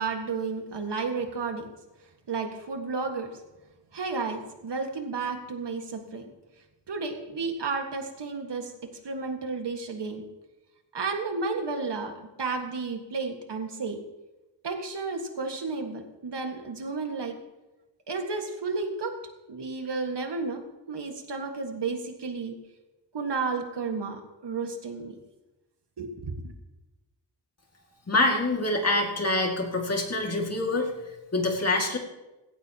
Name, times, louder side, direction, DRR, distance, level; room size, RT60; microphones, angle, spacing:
voice 1, 0.0-1.7 2.3-3.3 3.9-6.2 6.9-8.7 9.0-10.2 10.9-14.0 14.6-17.4 18.1-19.2 19.5-20.6 20.9-22.5 23.1-25.2 26.0-26.5, right 4 dB, 65° right, 4 dB, 1.8 m, -32 dB
voice 2, 28.1-30.9 31.3-32.0, left 2 dB, 35° left, 1 dB, 2.2 m, -25 dB
17.0 x 16.5 x 2.9 m, 1.0 s
wide cardioid pair, 165°, 44 cm